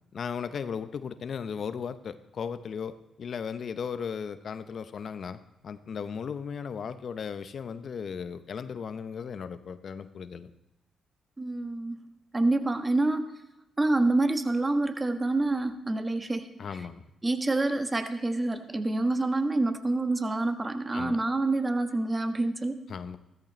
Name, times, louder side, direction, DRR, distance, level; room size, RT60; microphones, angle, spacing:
voice 1, 0.1-10.5 16.6-17.0 20.9-21.2 22.9-23.2, left 6 dB, 60° left, 12 dB, 0.8 m, -36 dB
voice 2, 11.4-12.1 12.3-13.3 13.8-16.5 17.2-22.8, right 2 dB, 25° right, 7 dB, 1.4 m, -27 dB
14.5 x 13.5 x 3.2 m, 0.93 s
hypercardioid pair, 45°, 0 cm